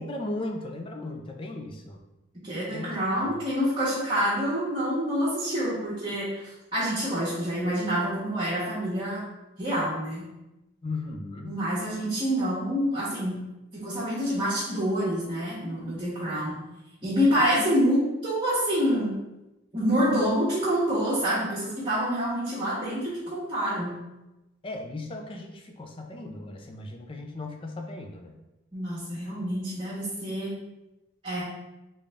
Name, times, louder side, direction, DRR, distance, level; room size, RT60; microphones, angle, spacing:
voice 1, 0.0-2.0 2.7-3.0 3.3-3.4 10.8-11.7 17.6-17.7 24.6-28.4, left 2 dB, 25° left, 3 dB, 0.4 m, -36 dB
voice 2, 2.4-9.2 9.6-10.2 11.4-13.4 13.7-16.6 17.0-19.1 19.7-23.9 28.7-30.5 31.2-31.4, equal, 30° right, -10 dB, 1.2 m, -27 dB
3.8 x 3.8 x 3.4 m, 0.99 s
head